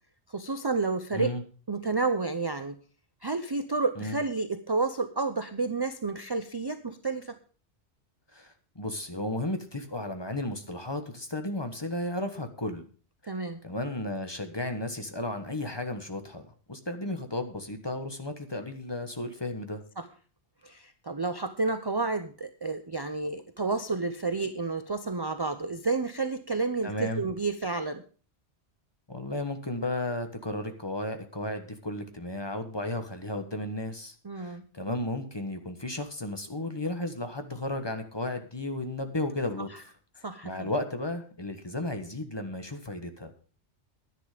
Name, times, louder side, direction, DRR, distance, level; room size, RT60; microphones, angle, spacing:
voice 1, 0.3-1.3 1.7-2.8 3.2-7.4 13.3-13.6 20.0-20.1 20.6-28.0 34.2-34.6 40.2-40.7, right 3 dB, 30° right, 10 dB, 0.5 m, -30 dB
voice 2, 8.3-12.8 13.6-19.8 26.8-27.2 29.1-43.3, left 1 dB, 20° left, 7 dB, 1.3 m, -34 dB
10.5 x 10.0 x 5.0 m, 0.39 s
omnidirectional pair, 1.2 m